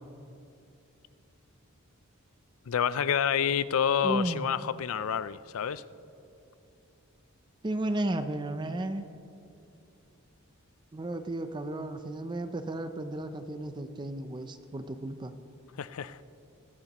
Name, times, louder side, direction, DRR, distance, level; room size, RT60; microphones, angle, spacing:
voice 1, 2.7-5.8 15.8-16.2, left 8 dB, 70° left, 0.4 m, -28 dB
voice 2, 4.0-4.5 7.6-9.0 10.9-15.3, right 1 dB, 20° right, 0.4 m, -33 dB
20.5 x 13.0 x 3.0 m
head